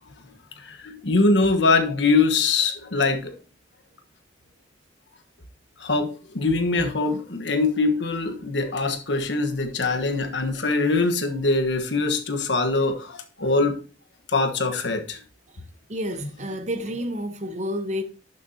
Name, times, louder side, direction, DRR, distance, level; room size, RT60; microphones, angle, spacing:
voice 1, 0.6-3.3 5.8-13.8 14.3-15.2, left 3 dB, 85° left, 1.3 m, -23 dB
voice 2, 15.9-18.0, equal, 40° right, 1.0 m, -29 dB
11.5 x 6.7 x 2.8 m
head